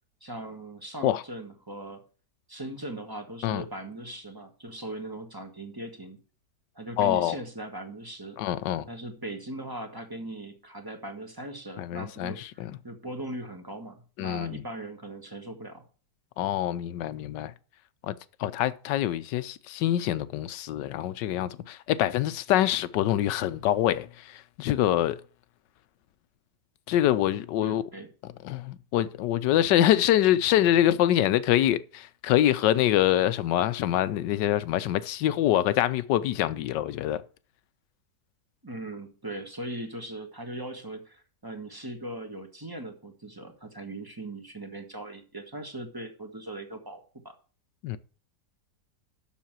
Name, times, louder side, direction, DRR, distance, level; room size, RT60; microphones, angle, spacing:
voice 1, 0.2-2.0 2.5-6.2 6.7-8.4 8.9-15.8 27.6-28.1 38.6-47.3, right 1 dB, 15° right, 1.4 m, -39 dB
voice 2, 7.0-7.4 8.4-8.9 11.8-12.7 14.2-14.6 16.4-17.5 18.0-18.1 18.4-25.2 26.9-27.8 28.4-37.2 47.8-48.0, left 12 dB, 90° left, 1.3 m, -25 dB
7.2 x 6.6 x 7.5 m
omnidirectional pair, 1.8 m